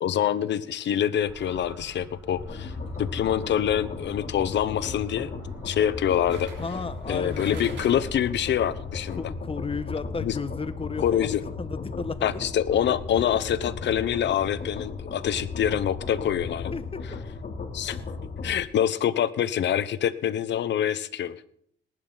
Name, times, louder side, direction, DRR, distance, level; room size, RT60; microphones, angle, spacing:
voice 1, 0.0-2.7 3.0-5.3 5.6-6.5 7.1-9.2 10.2-10.3 11.0-11.4 12.2-16.7 17.7-18.0 18.4-21.4, left 10 dB, 65° left, 15 dB, 1.0 m, -25 dB
sound 1, 1.2-9.3, right 2 dB, 15° right, 2.5 m, -50 dB
sound 2, 2.4-18.5, left 4 dB, 45° left, 3.1 m, -36 dB
sound 3, 3.7-4.0 6.3-8.3 8.6-8.7, right 4 dB, 60° right, 3.4 m, -45 dB
voice 2, 6.6-7.9 9.2-11.3 11.6-12.3 16.7-17.2 17.8-18.0, left 4 dB, 30° left, 13 dB, 1.0 m, -34 dB
19.0 x 11.0 x 4.0 m, 0.65 s
cardioid pair, 90°, 20 cm